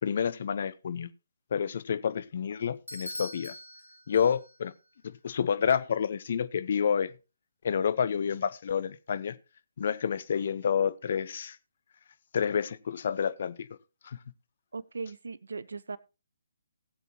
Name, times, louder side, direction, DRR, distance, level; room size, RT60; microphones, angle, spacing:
voice 1, 0.0-1.1 1.5-3.5 4.1-4.7 5.0-7.1 7.6-9.3 9.8-11.6 12.3-13.7 14.0-14.2, left 7 dB, 45° left, 0.9 m, -29 dB
Bell / Doorbell, 2.9-4.7, left 1 dB, 85° left, 1.3 m, -43 dB
voice 2, 14.7-16.0, right 4 dB, 65° right, 0.8 m, -38 dB
19.0 x 8.1 x 3.0 m
figure-of-eight pair, 135°, 0 cm